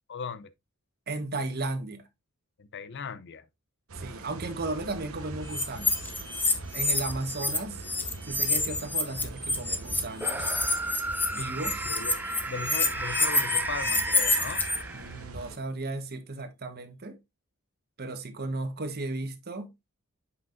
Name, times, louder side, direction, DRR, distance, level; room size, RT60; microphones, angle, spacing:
voice 1, 0.1-0.5 2.6-3.4 7.4-7.5 11.8-12.2 12.5-14.6, left 5 dB, 55° left, 0.6 m, -38 dB
voice 2, 1.1-2.0 4.0-6.1 6.7-7.8 8.3-10.6 11.3-11.9 14.9-17.2 18.0-19.7, right 2 dB, 45° right, 1.2 m, -35 dB
sound 1, 3.9-15.6, right 2 dB, 75° right, 1.1 m, -43 dB
sound 2, 5.5-7.6 7.8-14.8, left 3 dB, 10° left, 1.0 m, -27 dB
sound 3, 10.2-15.4, right 2 dB, 10° right, 0.3 m, -34 dB
8.0 x 5.6 x 2.5 m
head